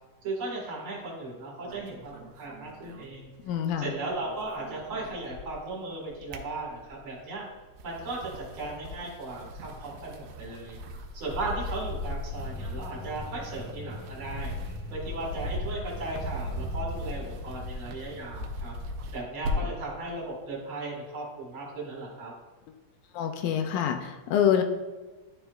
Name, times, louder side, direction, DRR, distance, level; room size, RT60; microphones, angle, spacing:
voice 1, 0.2-3.3 3.8-7.4 7.8-10.8 11.1-14.5 14.9-18.7 19.1-22.3, right 2 dB, 50° right, -3 dB, 2.2 m, -36 dB
sound 1, 1.7-3.8 4.1-5.7 6.1-7.1 7.6-19.9, left 1 dB, 75° right, 1.8 m, -37 dB
voice 2, 3.4-3.9 23.1-24.6, left 9 dB, 80° left, 6 dB, 2.0 m, -26 dB
sound 2, 12.3-18.5, left 2 dB, 20° right, 1.8 m, -43 dB
11.5 x 4.3 x 2.3 m, 1.2 s
omnidirectional pair, 3.6 m